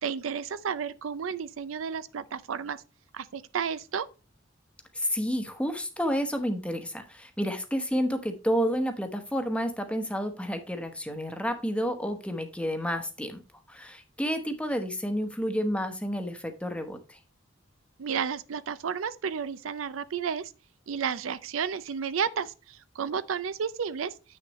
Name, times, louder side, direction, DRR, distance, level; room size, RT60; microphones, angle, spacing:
voice 1, 0.0-2.8 3.1-4.1 18.0-20.5 20.9-24.1, right 7 dB, 85° right, 0.5 m, -32 dB
voice 2, 4.9-13.4 13.7-17.2, equal, 5° left, 0.9 m, -30 dB
8.2 x 6.4 x 3.1 m
head